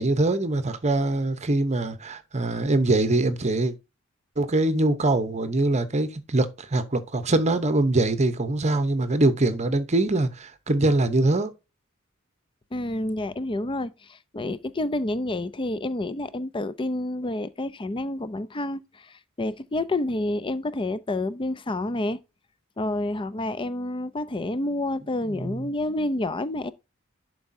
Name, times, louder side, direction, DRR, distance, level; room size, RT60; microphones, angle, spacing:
voice 1, 0.0-3.7 4.4-11.5 25.2-25.7, right 2 dB, 30° right, 0.8 m, -23 dB
voice 2, 12.7-22.2 22.8-26.7, left 1 dB, 25° left, 0.5 m, -29 dB
11.5 x 4.7 x 2.7 m
head